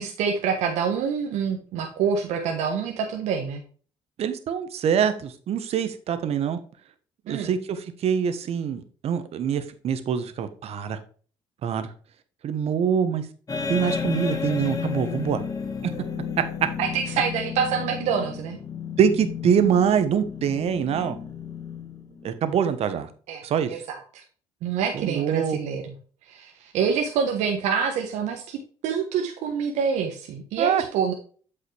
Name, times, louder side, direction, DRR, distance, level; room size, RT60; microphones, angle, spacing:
voice 1, 0.0-3.6 7.3-7.5 16.8-18.6 23.3-23.4 23.7-24.2 24.6-25.8 26.3-31.1, right 6 dB, 80° right, 3 dB, 1.2 m, -26 dB
voice 2, 4.2-6.6 7.3-11.0 11.6-11.9 12.4-13.3 13.7-15.4 19.0-21.2 22.2-23.1 23.4-23.7 24.9-25.6 30.6-30.8, right 8 dB, 60° right, 11 dB, 1.1 m, -24 dB
sound 1, 13.5-22.4, left 6 dB, 30° left, 1.7 m, -32 dB
8.2 x 5.6 x 3.4 m, 0.42 s
supercardioid pair, 80°, 12 cm